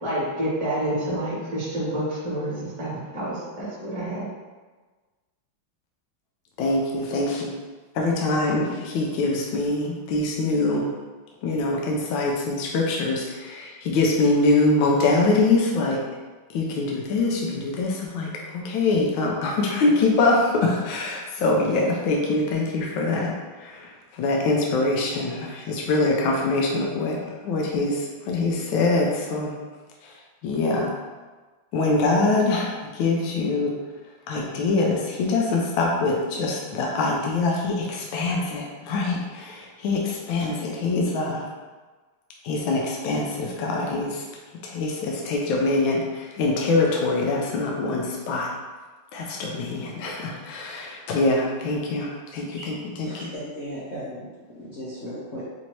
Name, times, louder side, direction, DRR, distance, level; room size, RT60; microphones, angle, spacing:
voice 1, 0.0-4.3, right 1 dB, 20° right, -8 dB, 1.1 m, -28 dB
voice 2, 6.6-7.5 7.9-10.9 11.4-16.0 16.5-27.2 27.4-29.5 30.0-30.1 30.4-30.9 31.7-33.8 34.3-41.5 42.4-44.3 44.6-48.5 49.1-53.1, left 3 dB, 80° left, -1 dB, 1.3 m, -24 dB
voice 3, 53.0-55.4, equal, 60° left, -9 dB, 0.8 m, -36 dB
4.2 x 2.7 x 3.0 m, 1.3 s
omnidirectional pair, 2.2 m